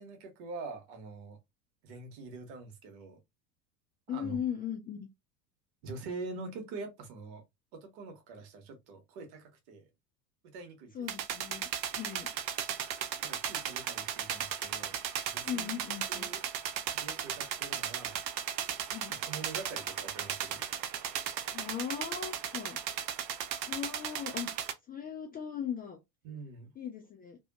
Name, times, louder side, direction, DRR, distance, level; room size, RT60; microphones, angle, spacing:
voice 1, 0.0-1.4 1.8-3.2 4.1-4.4 5.8-7.4 7.7-9.9 10.5-10.9 13.2-14.9 15.3-15.7 16.1-16.4 16.9-18.2 19.1-20.6 26.2-26.7, right 4 dB, 60° right, 1.2 m, -44 dB
voice 2, 4.1-5.1 10.9-11.6 11.9-12.3 15.4-16.3 18.9-19.2 21.5-22.8 23.6-24.5 24.9-26.0 26.8-27.4, left 8 dB, 20° left, 0.3 m, -38 dB
sound 1, 11.1-24.7, right 9 dB, 85° right, 0.6 m, -36 dB
2.7 x 2.7 x 2.4 m
hypercardioid pair, 85°, 49 cm